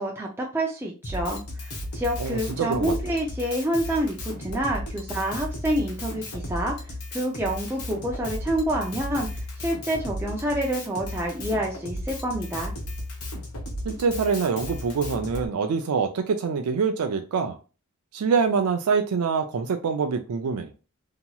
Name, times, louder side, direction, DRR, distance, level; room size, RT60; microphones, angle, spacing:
voice 1, 0.0-12.7, right 1 dB, 10° right, 0.4 m, -28 dB
Drum kit, 1.0-15.5, left 1 dB, 85° left, 0.9 m, -35 dB
voice 2, 2.2-2.9 13.8-17.6 18.1-20.7, right 5 dB, 85° right, 0.4 m, -25 dB
2.9 x 2.8 x 2.2 m
head